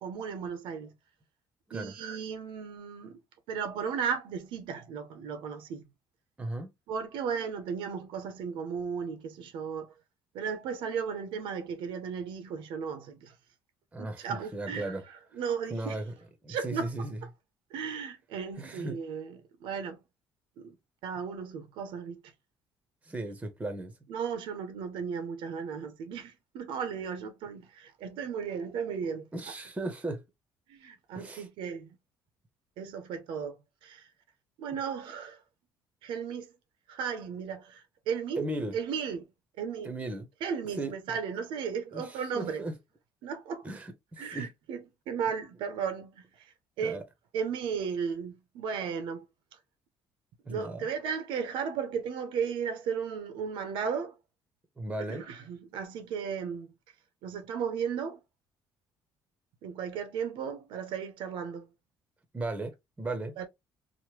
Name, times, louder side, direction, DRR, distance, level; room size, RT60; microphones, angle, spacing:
voice 1, 0.0-0.9 1.7-3.2 3.5-5.8 6.9-9.9 10.3-13.3 14.0-16.0 16.5-16.9 17.7-20.0 20.6-20.7 21.0-22.2 24.1-29.3 29.8-29.9 30.7-32.0 32.8-34.1 34.6-35.4 36.0-36.5 36.9-38.4 38.7-39.3 39.6-39.9 40.4-42.7 43.2-43.7 44.2-44.8 45.1-46.5 46.8-47.0 47.3-49.3 50.5-54.2 55.1-56.7 57.2-58.2 59.6-61.7 63.4-63.5, right 6 dB, 80° right, 0.6 m, -35 dB
voice 2, 6.4-6.7 13.9-15.0 15.7-16.1 16.4-17.2 18.6-19.0 23.1-23.9 29.3-30.2 31.1-31.5 38.4-38.7 39.8-40.3 40.8-41.2 41.9-42.8 43.6-44.5 46.8-47.0 50.5-50.9 54.8-55.2 62.3-63.4, right 2 dB, 15° right, 0.7 m, -36 dB
3.1 x 2.1 x 3.0 m
cardioid pair, 120°, 9 cm